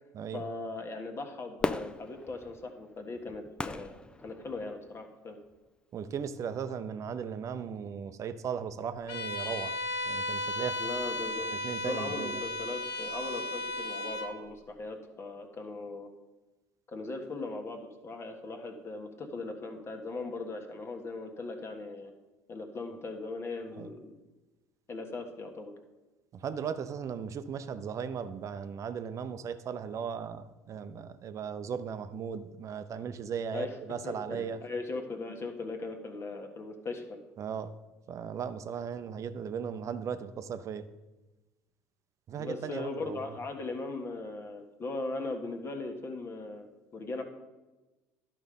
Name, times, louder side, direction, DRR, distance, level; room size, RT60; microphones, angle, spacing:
voice 1, 0.3-3.9 4.2-5.4 10.8-11.5 11.8-16.1 16.9-22.1 22.5-24.1 24.9-25.7 33.5-33.8 34.0-37.2 42.4-46.7 46.9-47.2, left 3 dB, 35° left, 4 dB, 1.5 m, -39 dB
Fireworks, 1.6-4.9 5.5-5.6, left 2 dB, 15° left, 0.5 m, -37 dB
voice 2, 5.9-9.7 10.1-10.8 11.5-12.4 23.8-23.9 26.3-34.6 37.4-37.7 38.1-40.9 42.3-43.3, right 7 dB, 45° right, 11 dB, 0.7 m, -37 dB
Bowed string instrument, 9.1-14.4, left 1 dB, 70° left, 2.3 m, -35 dB
11.0 x 5.1 x 5.4 m, 1.1 s
hypercardioid pair, 75°, 7 cm